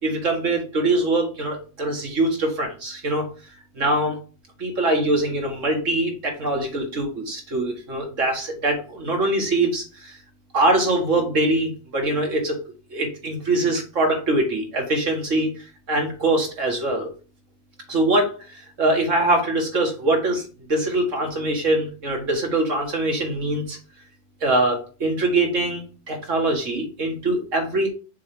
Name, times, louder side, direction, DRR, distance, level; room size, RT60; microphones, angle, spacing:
voice 1, 0.0-3.3 3.7-4.2 4.6-10.2 10.5-12.6 12.9-15.5 15.9-17.1 17.9-23.8 24.4-27.9, right 2 dB, 90° right, 1 dB, 2.2 m, -23 dB
6.7 x 3.4 x 4.6 m, 0.35 s
omnidirectional pair, 1.3 m